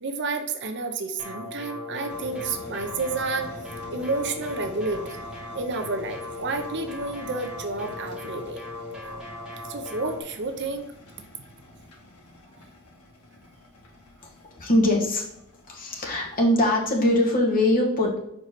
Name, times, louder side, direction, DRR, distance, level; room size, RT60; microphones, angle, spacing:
voice 1, 0.0-3.5 3.9-5.2 5.5-8.6 9.7-10.9, right 3 dB, 55° right, 6 dB, 0.7 m, -30 dB
sound 1, 1.2-10.2, left 2 dB, 5° right, 1.6 m, -38 dB
sound 2, 2.1-17.0, left 1 dB, 85° left, 1.6 m, -48 dB
voice 2, 14.5-15.2 15.7-18.2, left 1 dB, 40° left, -1 dB, 1.5 m, -22 dB
5.3 x 4.7 x 4.1 m, 0.81 s
head